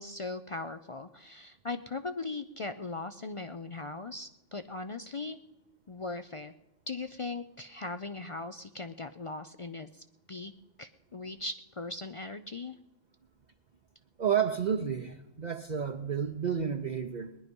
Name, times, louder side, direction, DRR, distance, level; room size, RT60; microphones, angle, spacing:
voice 1, 0.0-5.4 5.9-6.5 6.9-10.5 10.8-12.8, left 3 dB, 50° left, 10 dB, 0.3 m, -39 dB
voice 2, 14.2-17.4, right 7 dB, 45° right, 6 dB, 0.7 m, -31 dB
19.5 x 11.0 x 5.3 m, 0.97 s
omnidirectional pair, 1.3 m